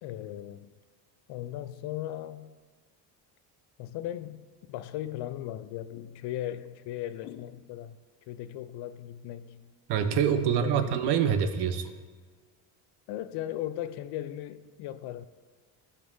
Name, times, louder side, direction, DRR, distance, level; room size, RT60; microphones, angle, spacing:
voice 1, 0.0-0.7 1.3-2.6 3.8-9.7 10.4-11.0 13.1-15.3, left 12 dB, 75° left, 0.5 m, -37 dB
voice 2, 9.9-11.9, right 8 dB, 70° right, 0.8 m, -25 dB
15.0 x 5.3 x 2.7 m
cardioid pair, 100°, 41 cm